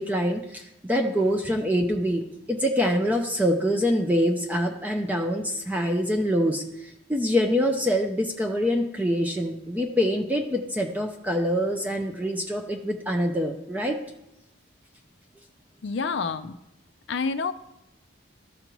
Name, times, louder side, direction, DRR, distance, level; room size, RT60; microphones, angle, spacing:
voice 1, 0.0-14.0, equal, 10° right, 3 dB, 0.5 m, -25 dB
voice 2, 15.8-16.6 17.1-17.5, left 4 dB, 65° left, 8 dB, 0.4 m, -28 dB
14.0 x 5.2 x 3.0 m, 0.87 s
head